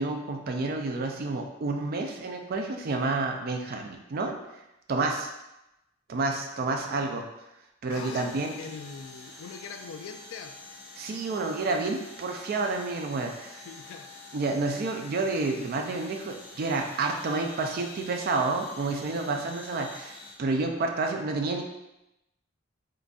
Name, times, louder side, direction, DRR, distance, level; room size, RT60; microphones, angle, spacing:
voice 1, 0.0-4.4 4.9-5.3 6.1-7.3 7.8-8.5 11.0-13.6 14.3-21.6, right 3 dB, 50° right, 3 dB, 0.4 m, -29 dB
voice 2, 7.9-10.6 13.7-14.1 19.1-19.4, left 5 dB, 90° left, 6 dB, 0.3 m, -42 dB
sound 1, 7.9-20.3, left 2 dB, 15° right, 1.0 m, -47 dB
3.8 x 2.5 x 2.3 m, 0.91 s
head